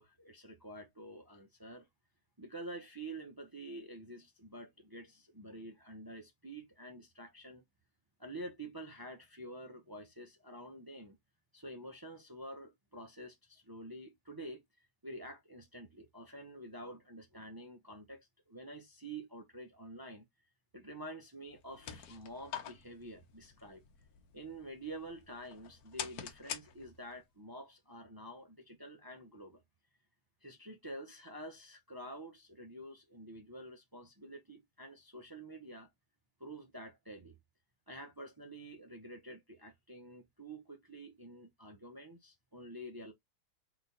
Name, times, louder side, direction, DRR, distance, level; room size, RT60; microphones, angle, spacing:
voice 1, 0.0-1.9 2.4-7.6 8.2-11.2 11.5-14.6 15.0-20.3 20.7-23.8 24.3-29.6 30.4-35.9 36.4-37.4 37.9-43.1, right 1 dB, 30° right, 0.4 m, -48 dB
sound 1, 21.5-27.2, left 8 dB, 65° left, 1.1 m, -47 dB
4.0 x 3.1 x 4.0 m
omnidirectional pair, 1.9 m